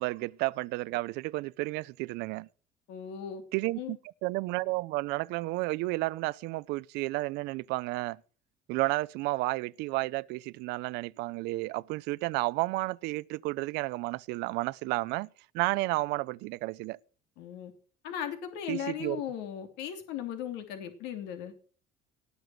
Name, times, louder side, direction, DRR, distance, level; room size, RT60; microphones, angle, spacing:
voice 1, 0.0-2.5 3.5-8.2 8.7-15.3 15.5-17.0 18.7-19.2, right 21 dB, 75° right, 0.6 m, -32 dB
voice 2, 2.9-3.4 3.8-4.0 17.4-17.7 18.0-21.5, left 9 dB, 75° left, 2.9 m, -37 dB
18.5 x 7.0 x 7.8 m
cardioid pair, 160°, 17 cm